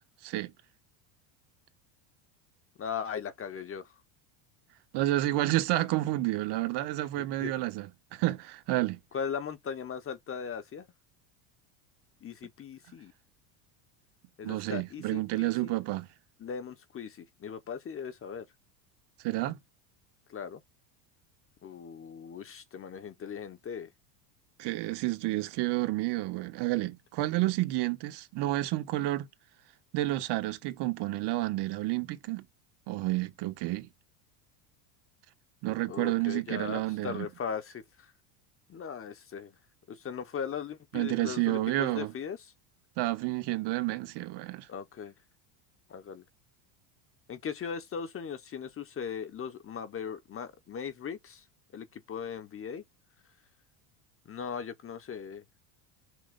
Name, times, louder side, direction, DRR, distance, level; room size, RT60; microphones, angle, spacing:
voice 1, 2.8-3.9 7.2-7.5 9.1-10.9 12.2-13.1 14.4-15.8 16.4-18.5 20.3-20.6 21.6-23.9 35.9-38.1 38.7-39.5 39.9-42.4 44.7-45.1 45.9-46.2 47.3-51.4 51.7-52.8 54.2-55.4, left 7 dB, 25° left, 1.0 m, -38 dB
voice 2, 4.9-9.0 14.4-16.1 19.2-19.6 24.6-29.3 29.9-32.4 32.9-33.9 35.6-37.3 40.9-42.1 43.0-44.7, right 17 dB, 55° right, 1.3 m, -30 dB
6.1 x 3.0 x 5.2 m
supercardioid pair, 125°, 48 cm